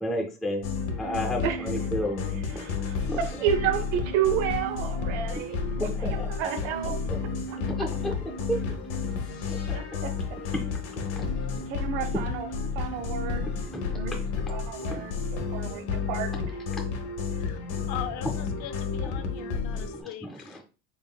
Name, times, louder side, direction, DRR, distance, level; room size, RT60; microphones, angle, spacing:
voice 1, 0.0-0.6 1.0-2.6 3.1-3.2 5.8-6.3 7.1-7.2 7.8-8.1 8.5-8.6 9.4-9.6 10.5-11.2 13.7-14.0 20.0-20.3, equal, ahead, 0 dB, 0.3 m, -32 dB
sound 1, 0.6-20.0, left 5 dB, 80° left, 1.0 m, -31 dB
voice 2, 2.3-5.6 6.0-7.0 7.5-7.9 9.7-10.1 11.7-12.5 12.7-13.5 13.9-14.2 14.5-16.3, right 9 dB, 75° right, 6 dB, 0.6 m, -31 dB
voice 3, 17.9-20.6, left 11 dB, 50° left, 10 dB, 0.5 m, -39 dB
4.1 x 3.6 x 2.2 m, 0.34 s
cardioid pair, 160°, 37 cm